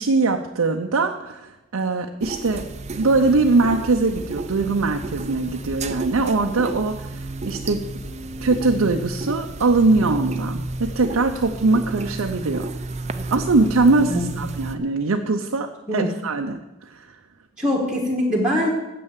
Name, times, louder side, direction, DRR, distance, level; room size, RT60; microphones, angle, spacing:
voice 1, 0.0-2.7 2.9-7.8 8.4-12.7 13.3-17.1, right 3 dB, 80° right, 3 dB, 0.6 m, -21 dB
sound 1, 2.2-14.8, right 2 dB, 30° right, 0.5 m, -32 dB
voice 2, 14.1-14.4 15.9-16.1 17.6-18.7, left 1 dB, 5° right, -2 dB, 1.5 m, -22 dB
9.7 x 7.8 x 7.3 m, 1.0 s
head